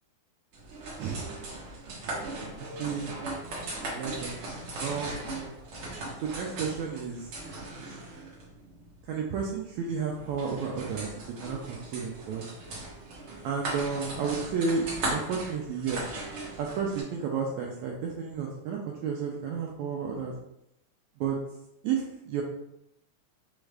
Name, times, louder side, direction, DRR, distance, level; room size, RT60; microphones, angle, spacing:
sound 1, 0.5-17.0, right 2 dB, 60° right, 1.4 m, -38 dB
voice 1, 2.6-3.2 3.9-4.4 4.8-5.3 6.2-7.3 9.1-11.1 11.4-12.5 13.4-16.0 16.6-20.3 21.2-21.4 21.8-22.4, right 6 dB, 80° right, -1 dB, 1.6 m, -32 dB
6.1 x 2.4 x 3.3 m, 0.81 s
omnidirectional pair, 3.7 m